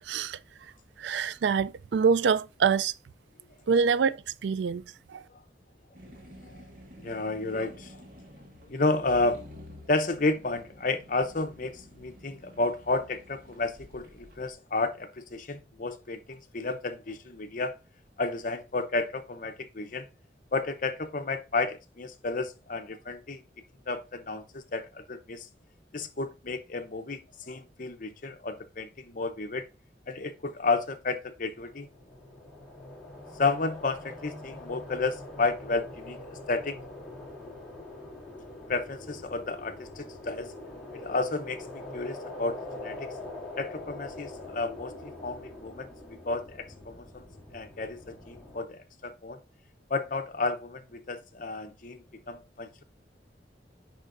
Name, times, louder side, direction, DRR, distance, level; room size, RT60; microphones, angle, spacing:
voice 1, 0.1-0.4 1.0-2.9 3.7-4.8 5.1-5.2, right 6 dB, 80° right, 0.4 m, -25 dB
sound 1, 5.9-14.5, equal, 50° right, 1.7 m, -51 dB
voice 2, 7.0-8.0 8.6-9.4 9.9-17.7 18.2-20.1 20.5-23.4 23.9-25.5 25.9-29.7 30.1-31.9 33.3-36.8 38.7-40.5 40.9-43.1 43.6-45.9 46.2-47.3 47.5-49.4 49.9-52.8, left 3 dB, 50° left, 0.8 m, -32 dB
sound 2, 31.6-48.6, left 2 dB, 5° left, 2.8 m, -44 dB
8.9 x 5.5 x 2.6 m
head